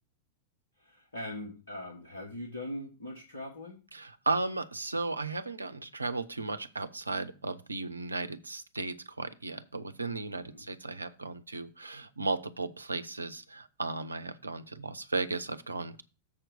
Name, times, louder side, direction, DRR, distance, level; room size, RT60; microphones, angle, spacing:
voice 1, 0.8-3.8 10.3-10.7, left 1 dB, 70° left, 0 dB, 1.5 m, -41 dB
voice 2, 3.9-16.0, right 3 dB, 80° right, 12 dB, 0.6 m, -35 dB
7.1 x 4.5 x 6.6 m, 0.34 s
figure-of-eight pair, 90°, 0 cm